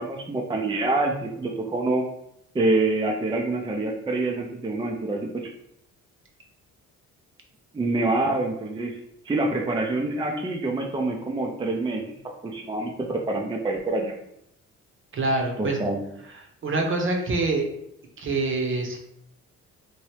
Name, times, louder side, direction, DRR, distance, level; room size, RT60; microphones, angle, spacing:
voice 1, 0.0-2.0 2.5-5.5 7.7-9.0 9.2-12.2 12.4-14.2 15.6-16.0, right 2 dB, 15° right, 0 dB, 0.4 m, -26 dB
voice 2, 15.1-15.8 16.6-17.6 18.2-19.0, right 2 dB, 40° right, 2 dB, 0.8 m, -25 dB
2.9 x 2.6 x 3.1 m, 0.75 s
cardioid pair, 90°, 30 cm